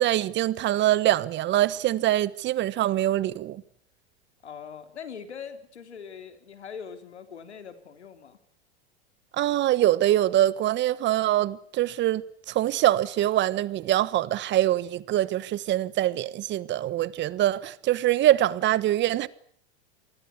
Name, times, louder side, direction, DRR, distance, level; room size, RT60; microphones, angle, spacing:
voice 1, 0.0-3.6 9.3-12.2 12.5-19.3, right 13 dB, 35° right, 1.3 m, -24 dB
voice 2, 4.4-8.4, left 7 dB, 90° left, 3.5 m, -42 dB
27.5 x 20.0 x 8.4 m
hypercardioid pair, 110°, 33 cm